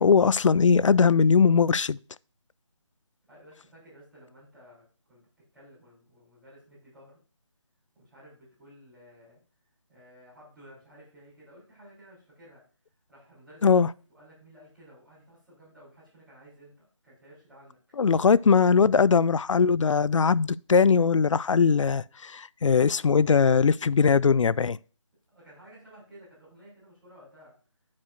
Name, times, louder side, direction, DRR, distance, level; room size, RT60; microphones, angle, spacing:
voice 1, 0.0-2.0 13.6-13.9 18.0-24.8, left 5 dB, 80° left, 0.4 m, -20 dB
voice 2, 3.3-5.2 5.5-7.2 7.9-9.4 9.9-12.6 13.1-13.8 14.1-17.8 25.3-27.5, equal, ahead, 3.4 m, -54 dB
8.9 x 7.5 x 2.5 m
figure-of-eight pair, 175°, 16 cm